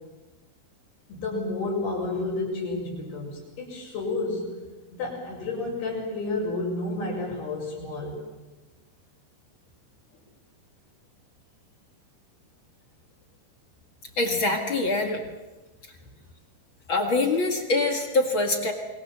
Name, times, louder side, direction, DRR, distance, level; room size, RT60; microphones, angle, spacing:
voice 1, 1.1-4.6 4.9-8.2 16.0-16.1, left 2 dB, 70° left, -6 dB, 7.7 m, -31 dB
voice 2, 14.2-15.2 16.9-18.7, left 2 dB, 40° left, 4 dB, 2.0 m, -24 dB
27.5 x 22.0 x 7.5 m, 1.2 s
omnidirectional pair, 4.7 m